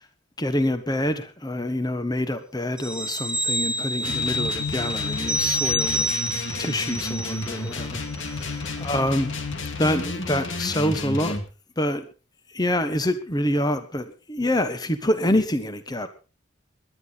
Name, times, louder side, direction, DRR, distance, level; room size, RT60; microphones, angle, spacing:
voice 1, 0.4-6.1 6.6-9.3 9.8-11.4 11.8-12.1 12.5-16.1, left 1 dB, 20° left, 10 dB, 1.3 m, -26 dB
sound 1, 2.8-7.9 8.2-8.4, equal, 5° right, 1.1 m, -28 dB
sound 2, 4.0-11.5, left 3 dB, 70° left, 2.2 m, -31 dB
19.0 x 11.5 x 4.1 m, 0.33 s
head